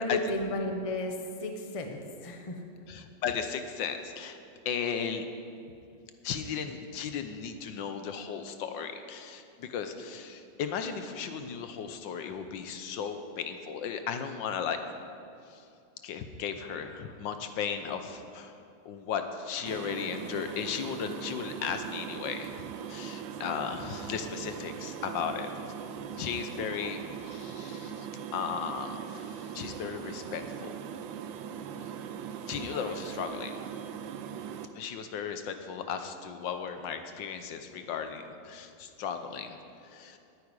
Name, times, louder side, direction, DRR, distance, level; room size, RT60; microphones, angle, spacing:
voice 1, 0.0-2.6, left 2 dB, 25° left, 4 dB, 0.8 m, -33 dB
voice 2, 2.9-4.4 4.6-5.3 6.2-14.8 15.5-15.6 16.0-22.6 22.9-25.5 26.2-30.8 32.5-33.6 34.7-39.6 39.8-40.2, left 7 dB, 75° left, 8 dB, 1.5 m, -36 dB
sound 1, 19.7-34.7, right 8 dB, 85° right, 1.4 m, -40 dB
9.6 x 8.7 x 9.7 m, 2.5 s
omnidirectional pair, 2.1 m